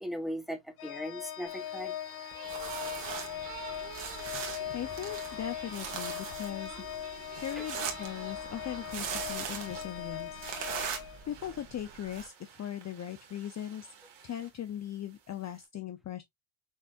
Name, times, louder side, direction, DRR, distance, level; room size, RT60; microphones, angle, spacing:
voice 1, 0.0-2.3 7.6-7.7, equal, ahead, 1.1 m, -39 dB
Organ, 0.8-11.6, left 11 dB, 90° left, 1.1 m, -40 dB
sound 1, 1.5-15.7, right 7 dB, 90° right, 2.4 m, -50 dB
sound 2, 2.4-12.2, right 7 dB, 60° right, 1.8 m, -41 dB
voice 2, 4.3-6.8 7.4-10.5 11.3-13.9 14.2-16.2, left 10 dB, 35° left, 0.6 m, -39 dB
6.4 x 3.3 x 2.4 m
cardioid pair, 115°, 48 cm